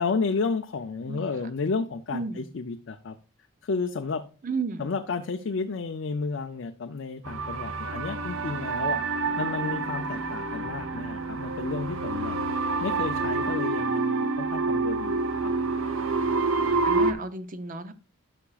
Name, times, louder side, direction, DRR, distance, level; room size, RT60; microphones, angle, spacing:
voice 1, 0.0-3.2 3.6-4.2 4.8-9.0 9.4-12.4 12.8-15.5, left 4 dB, 55° left, 6 dB, 0.4 m, -32 dB
voice 2, 1.0-1.4 2.1-2.4 4.4-4.9 16.8-17.9, right 4 dB, 40° right, 11 dB, 0.6 m, -33 dB
sound 1, 7.2-17.1, right 3 dB, 70° right, 0.8 m, -28 dB
11.5 x 5.9 x 2.4 m, 0.36 s
head